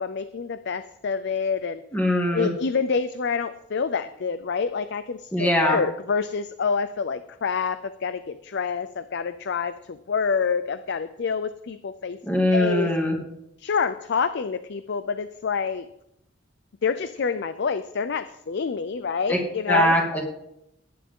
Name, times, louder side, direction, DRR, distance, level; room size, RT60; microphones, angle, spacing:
voice 1, 0.0-1.8 2.3-12.2 12.5-12.9 13.6-15.9 16.8-20.0, left 5 dB, 60° left, 12 dB, 0.5 m, -27 dB
voice 2, 1.9-2.5 5.3-5.8 12.2-13.2 19.3-19.4 19.7-20.2, equal, 10° left, 0 dB, 2.3 m, -21 dB
18.0 x 9.5 x 3.7 m, 0.81 s
head